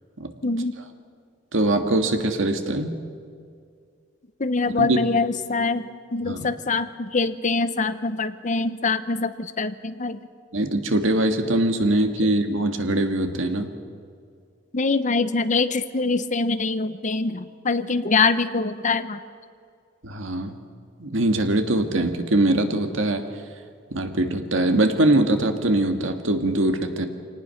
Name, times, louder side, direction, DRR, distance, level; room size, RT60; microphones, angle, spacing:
voice 1, 0.4-0.7 4.4-10.2 14.7-19.2, left 4 dB, 40° left, 12 dB, 0.8 m, -24 dB
voice 2, 1.5-3.0 4.8-5.0 6.2-6.5 10.5-13.7 20.0-20.6 21.0-23.2 23.9-27.1, right 1 dB, 85° right, 6 dB, 1.8 m, -22 dB
25.0 x 18.5 x 5.8 m, 2.2 s
head